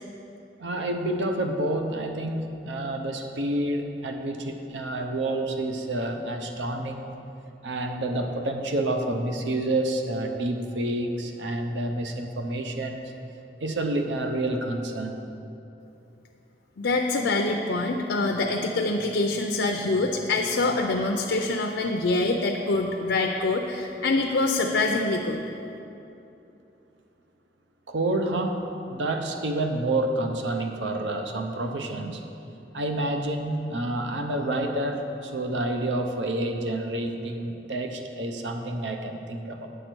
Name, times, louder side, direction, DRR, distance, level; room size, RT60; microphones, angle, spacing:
voice 1, 0.6-7.1 7.6-13.0 13.6-15.2 27.9-32.2 32.7-39.7, right 1 dB, 90° right, 5 dB, 0.7 m, -28 dB
voice 2, 16.8-25.4, left 2 dB, 80° left, 3 dB, 0.5 m, -25 dB
9.0 x 6.5 x 4.5 m, 2.9 s
head